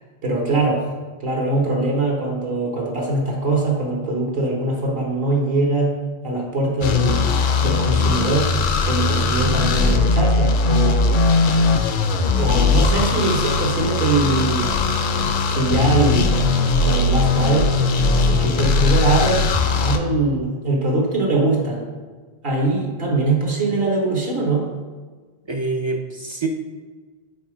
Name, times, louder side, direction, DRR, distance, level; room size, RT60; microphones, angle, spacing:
voice 1, 0.2-0.8 1.2-5.9 6.2-7.3 7.6-8.5 8.8-11.2 12.4-14.7 15.5-16.4 16.8-17.7 18.2-19.4 19.8-21.8 22.4-24.7, right 2 dB, 65° right, -1 dB, 1.4 m, -22 dB
sound 1, 6.8-20.0, left 3 dB, 60° left, 0.6 m, -19 dB
voice 2, 25.5-26.5, right 3 dB, 45° right, 3 dB, 0.4 m, -25 dB
5.4 x 4.2 x 4.9 m, 1.4 s
omnidirectional pair, 1.1 m